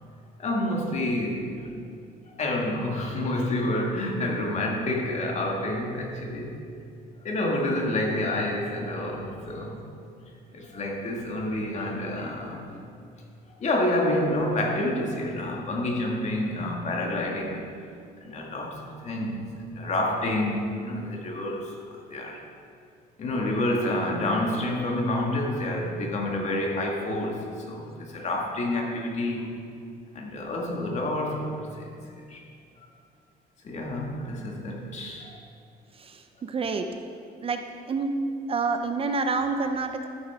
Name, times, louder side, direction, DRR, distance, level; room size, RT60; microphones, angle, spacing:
voice 1, 0.4-1.7 2.4-6.6 7.2-9.8 10.5-12.8 13.6-17.6 18.2-19.5 19.7-22.4 23.2-29.5 30.1-32.4 33.6-35.4, left 1 dB, 40° left, 0 dB, 1.9 m, -28 dB
voice 2, 35.9-36.9 37.4-38.1 38.5-40.1, right 4 dB, 35° right, 6 dB, 0.6 m, -28 dB
12.5 x 9.1 x 3.6 m, 2.4 s
cardioid pair, 110°, 17 cm